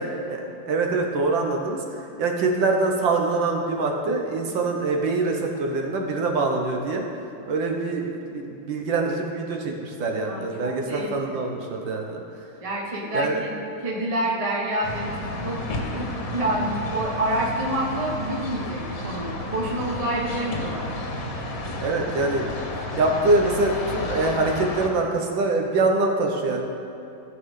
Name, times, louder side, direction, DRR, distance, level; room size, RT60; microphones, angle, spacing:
voice 1, 0.2-7.1 7.5-12.2 13.1-13.4 21.8-22.6 23.0-26.6, right 3 dB, 80° right, 2 dB, 1.7 m, -24 dB
voice 2, 10.3-11.4 12.6-13.5 13.8-15.1 15.4-15.6 15.9-20.9, right 1 dB, 20° right, -4 dB, 1.1 m, -28 dB
sound 1, 14.8-24.9, left 2 dB, 50° left, 1.4 m, -32 dB
15.0 x 6.4 x 3.7 m, 3.0 s
omnidirectional pair, 2.1 m